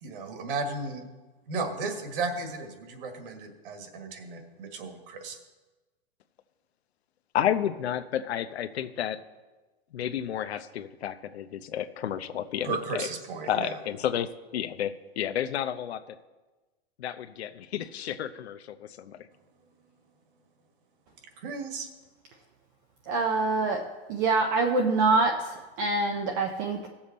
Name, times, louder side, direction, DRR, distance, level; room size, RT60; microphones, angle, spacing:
voice 1, 0.0-1.0 1.5-5.4 12.6-13.8 21.4-21.9, right 4 dB, 55° right, 5 dB, 1.8 m, -34 dB
voice 2, 7.3-9.2 9.9-13.1 13.4-16.2 17.0-19.3, left 10 dB, 90° left, 11 dB, 0.8 m, -31 dB
voice 3, 23.1-23.8 24.1-26.9, right 3 dB, 20° right, 2 dB, 0.4 m, -25 dB
17.0 x 7.3 x 4.2 m, 1.2 s
supercardioid pair, 165°, 31 cm